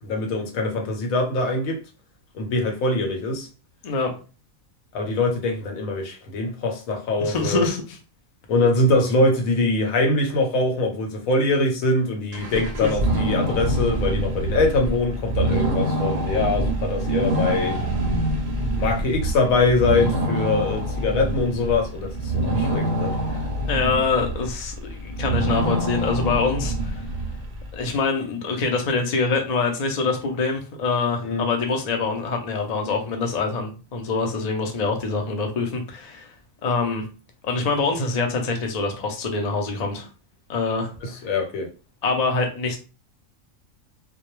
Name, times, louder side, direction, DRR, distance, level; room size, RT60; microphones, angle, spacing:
voice 1, 0.0-1.8 2.3-3.5 4.9-7.7 8.5-17.8 18.8-23.1 31.2-31.5 41.0-41.7, left 2 dB, 85° left, 1.1 m, -23 dB
voice 2, 7.2-8.0 12.8-12.9 23.7-27.1 27.7-36.3 36.6-37.0 37.4-40.1 40.5-40.9 42.0-42.8, left 4 dB, 65° left, 0.4 m, -25 dB
sound 1, 12.3-27.7, right 1 dB, 50° right, 0.6 m, -25 dB
2.2 x 2.1 x 3.0 m
omnidirectional pair, 1.4 m